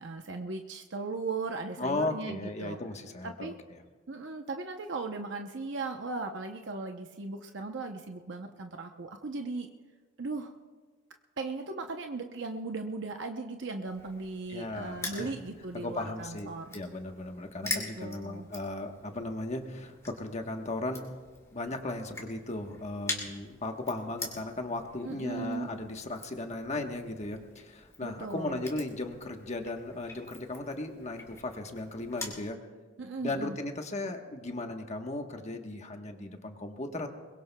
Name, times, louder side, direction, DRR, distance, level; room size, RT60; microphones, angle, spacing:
voice 1, 0.0-2.8 3.2-3.6 4.1-9.7 10.2-10.5 11.4-16.8 17.6-18.5 25.0-25.7 28.0-28.6 33.0-33.6, right 3 dB, 65° right, 4 dB, 0.8 m, -37 dB
voice 2, 1.8-3.8 14.5-15.3 15.7-21.1 21.5-32.6 33.2-37.1, left 2 dB, 35° left, 4 dB, 1.2 m, -36 dB
Crushing, 13.9-32.4, left 3 dB, 15° left, 2.6 m, -44 dB
22.5 x 21.5 x 2.3 m, 1.4 s
head